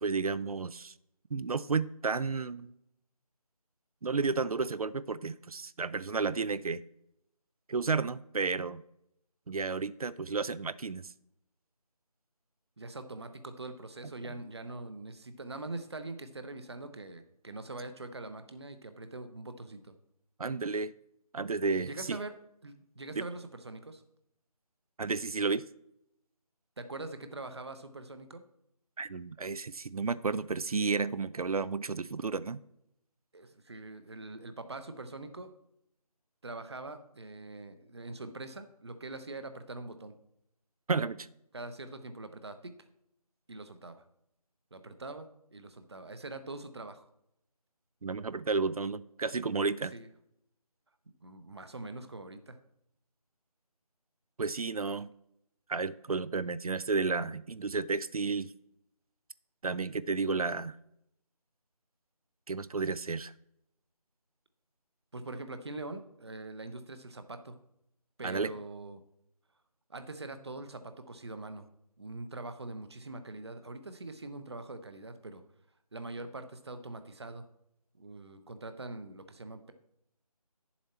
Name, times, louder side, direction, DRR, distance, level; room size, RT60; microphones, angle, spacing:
voice 1, 0.0-0.9 1.3-2.7 4.0-6.8 7.7-8.8 9.5-11.1 20.4-20.9 21.3-22.2 23.2-23.3 25.0-25.6 29.0-32.6 40.9-41.3 48.0-49.9 54.4-55.1 55.7-58.5 59.6-60.8 62.5-63.3 68.2-68.5, right 4 dB, 65° right, 17 dB, 0.5 m, -32 dB
voice 2, 12.8-19.9 21.8-22.3 22.6-24.0 26.8-28.4 33.3-35.5 36.4-40.1 41.5-42.7 43.5-44.0 44.7-47.1 49.9-50.1 51.2-52.6 65.1-67.5 68.2-69.0 69.9-71.7 72.0-75.4 75.9-77.5 77.9-79.7, right 2 dB, 45° right, 9 dB, 0.9 m, -43 dB
9.6 x 7.2 x 4.3 m, 0.79 s
figure-of-eight pair, 170°, 20 cm